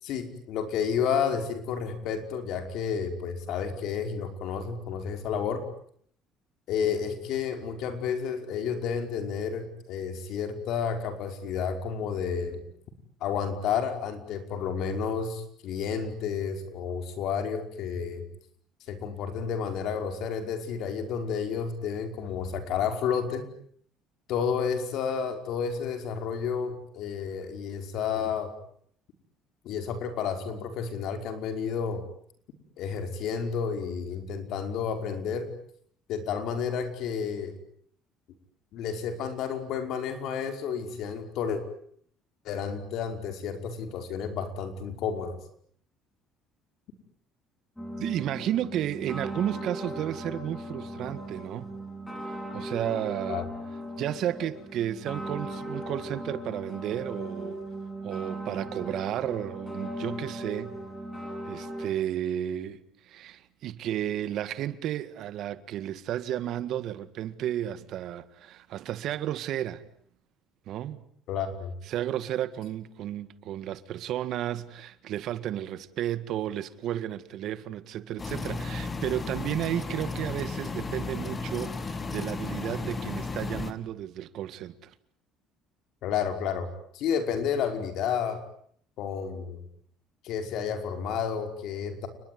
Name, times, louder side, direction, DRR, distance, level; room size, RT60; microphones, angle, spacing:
voice 1, 0.0-5.6 6.7-12.6 13.2-18.2 18.9-23.5 24.3-28.5 29.6-32.0 32.8-35.5 36.1-37.5 38.7-41.6 42.4-45.4 53.3-53.5 71.3-71.7 86.0-86.7 86.9-88.4 89.0-89.6 90.2-92.1, left 7 dB, 60° left, 5.3 m, -31 dB
sound 1, 47.8-61.9, right 1 dB, 5° left, 7.3 m, -38 dB
voice 2, 48.0-51.7 52.5-53.5 54.0-57.6 58.0-60.7 61.5-69.8 70.7-71.0 71.9-84.9, right 11 dB, 55° right, 1.8 m, -33 dB
sound 2, 78.2-83.7, left 3 dB, 20° left, 2.2 m, -34 dB
30.0 x 21.0 x 9.6 m
cardioid pair, 150°, 0 cm